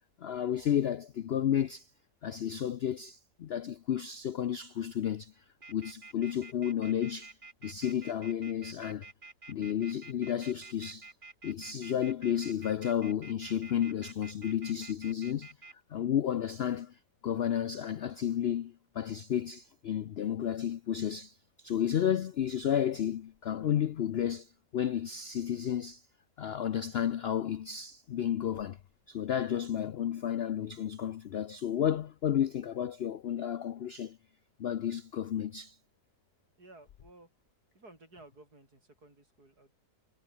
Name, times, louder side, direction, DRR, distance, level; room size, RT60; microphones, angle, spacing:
voice 1, 0.2-1.9 2.2-7.4 7.6-9.1 9.5-11.1 11.4-15.5 15.9-26.0 26.4-28.8 29.1-34.2 34.6-35.8, left 10 dB, 65° left, 0.6 m, -32 dB
Off charger, 5.6-15.7, right 3 dB, 30° right, 2.2 m, -50 dB
voice 2, 36.6-37.3 37.7-39.7, right 2 dB, 70° right, 7.4 m, -55 dB
omnidirectional pair, 1.7 m